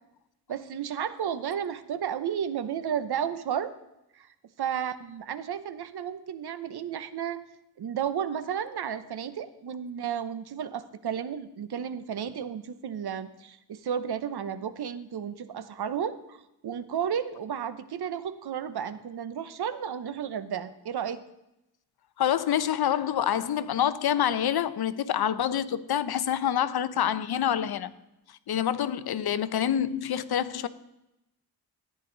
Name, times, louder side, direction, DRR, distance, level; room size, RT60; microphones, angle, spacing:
voice 1, 0.5-3.7 4.1-4.3 4.6-7.4 7.8-16.4 16.6-21.2, right 8 dB, 75° right, 0.9 m, -33 dB
voice 2, 22.2-27.9 28.5-30.7, left 10 dB, 70° left, 0.7 m, -27 dB
14.0 x 10.0 x 3.9 m
wide cardioid pair, 130°, 40 cm